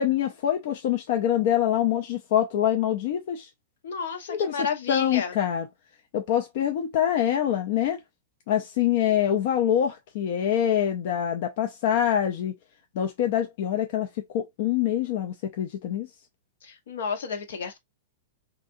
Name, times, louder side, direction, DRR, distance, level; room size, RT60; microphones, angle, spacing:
voice 1, 0.0-3.5 4.3-5.7 6.1-8.0 8.5-12.5 13.0-14.1 14.3-16.1, left 10 dB, 45° left, 0.4 m, -25 dB
voice 2, 3.8-5.3 16.6-17.8, left 5 dB, 70° left, 1.0 m, -31 dB
3.5 x 2.5 x 2.6 m
supercardioid pair, 175°, 0 cm